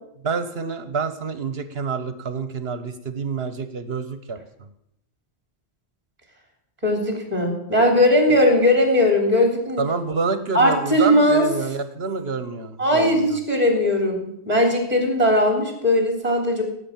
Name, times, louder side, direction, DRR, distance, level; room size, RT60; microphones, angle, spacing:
voice 1, 0.2-4.7 8.3-8.4 9.8-13.4, right 4 dB, 65° right, 11 dB, 1.4 m, -28 dB
voice 2, 6.8-9.8 10.5-11.4 12.8-16.6, left 1 dB, 35° right, 2 dB, 3.5 m, -19 dB
17.0 x 8.1 x 7.3 m, 0.78 s
omnidirectional pair, 1.1 m